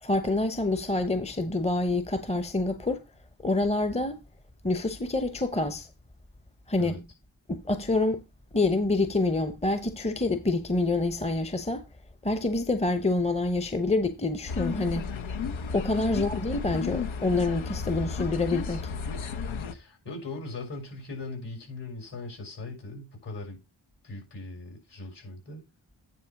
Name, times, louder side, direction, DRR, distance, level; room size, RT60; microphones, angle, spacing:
voice 1, 0.0-3.0 3.4-4.2 4.6-5.9 6.7-7.0 7.5-8.2 8.5-11.8 12.2-15.1 15.7-18.9, left 2 dB, 15° left, 0.9 m, -27 dB
sound 1, 14.5-19.7, left 5 dB, 75° left, 1.0 m, -33 dB
voice 2, 16.1-16.4 19.7-23.6 24.0-25.6, left 2 dB, 60° left, 6.1 m, -40 dB
9.8 x 3.5 x 5.8 m
cardioid pair, 60°, 48 cm